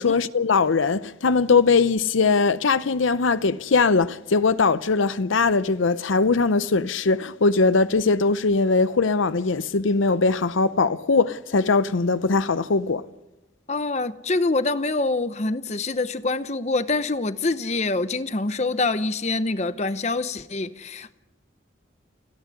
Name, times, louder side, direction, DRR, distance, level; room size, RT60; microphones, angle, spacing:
voice 1, 0.0-13.0, left 4 dB, 85° left, 0.7 m, -21 dB
voice 2, 13.7-21.2, left 3 dB, 35° left, 0.8 m, -25 dB
29.5 x 10.5 x 9.8 m
head